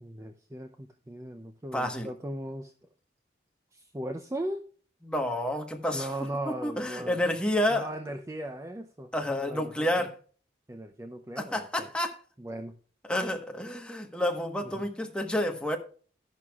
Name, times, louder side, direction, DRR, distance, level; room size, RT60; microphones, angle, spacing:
voice 1, 0.0-2.7 3.7-4.6 5.9-7.2 7.7-9.9 10.7-11.9 12.4-12.7 14.6-14.8, right 1 dB, 15° right, 0.5 m, -38 dB
voice 2, 1.7-2.1 5.0-6.1 6.4-7.9 9.1-10.1 11.4-12.2 13.0-15.8, left 1 dB, 5° left, 1.2 m, -29 dB
12.5 x 11.0 x 2.4 m
head